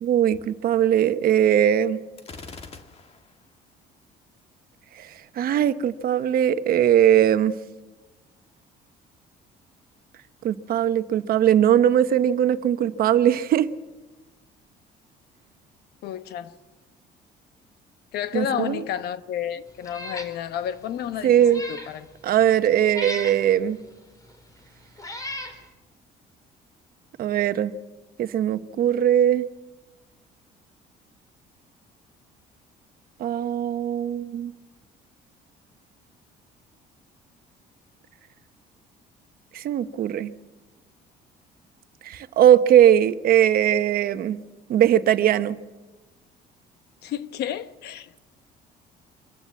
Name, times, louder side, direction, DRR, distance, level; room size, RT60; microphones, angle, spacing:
voice 1, 0.0-2.0 5.0-5.1 5.4-7.5 10.4-13.7 18.3-18.8 21.2-21.6 22.2-23.8 27.2-27.7 28.2-29.5 33.2-34.5 39.5-40.3 42.0-44.4 44.7-45.6, right 10 dB, 60° right, 1.0 m, -20 dB
Gunshot gunfire, 2.2-3.4, left 4 dB, 35° left, 1.8 m, -43 dB
voice 2, 16.0-16.5 18.1-22.1 47.0-48.2, left 10 dB, 75° left, 1.1 m, -31 dB
Meow, 19.8-20.3 20.8-20.9 21.4-21.9 22.9-23.4 24.3-24.4 25.0-25.6, left 1 dB, 20° left, 3.4 m, -35 dB
25.0 x 14.0 x 7.3 m
cardioid pair, 110°, 17 cm